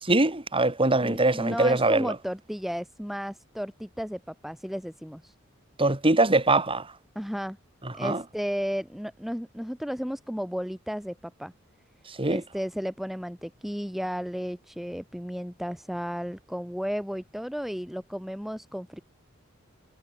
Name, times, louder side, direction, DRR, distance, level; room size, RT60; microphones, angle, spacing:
voice 1, 0.0-2.1 5.8-6.9 8.0-8.2 12.2-12.4, right 2 dB, 25° right, 3.2 m, -22 dB
voice 2, 1.0-5.3 7.2-7.6 7.9-11.5 12.3-19.0, equal, ahead, 2.4 m, -33 dB
head